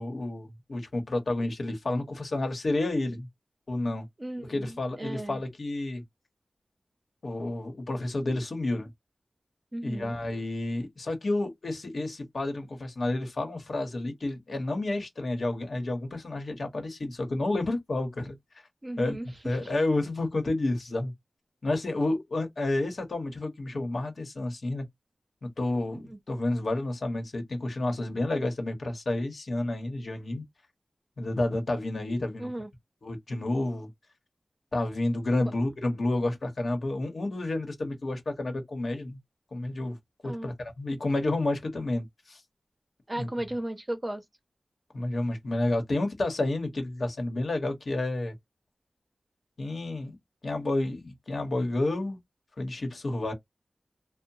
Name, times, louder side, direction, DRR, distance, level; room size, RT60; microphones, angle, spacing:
voice 1, 0.0-3.3 3.7-4.0 4.5-6.0 7.2-8.9 9.8-18.4 19.0-19.2 19.4-21.1 21.6-24.8 25.4-30.4 31.2-32.5 33.0-33.9 34.7-39.2 39.5-40.0 40.2-42.4 43.2-43.3 44.9-48.3 49.6-50.2 50.4-52.2 52.6-53.3, left 2 dB, 70° left, 1.0 m, -30 dB
voice 2, 4.2-5.4 9.7-10.2 18.8-19.7 25.9-26.2 32.4-32.7 40.2-40.5 43.1-44.2, right 1 dB, 30° right, 0.7 m, -36 dB
2.8 x 2.0 x 2.7 m
wide cardioid pair, 85°, 0 cm